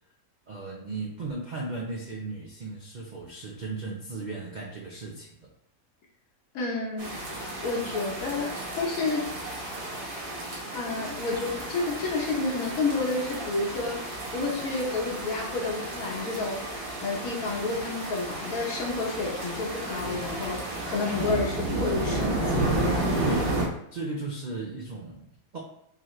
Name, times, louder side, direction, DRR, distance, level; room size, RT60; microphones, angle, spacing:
voice 1, 0.5-5.5 23.2-23.5 23.9-25.6, right 3 dB, 75° right, -2 dB, 0.4 m, -36 dB
voice 2, 6.5-7.2 7.6-9.3 10.7-14.1 14.3-23.4, left 3 dB, 75° left, -1 dB, 1.4 m, -30 dB
sound 1, 7.0-23.7, right 1 dB, 40° right, 1.1 m, -32 dB
4.0 x 2.7 x 3.1 m, 0.75 s
omnidirectional pair, 1.5 m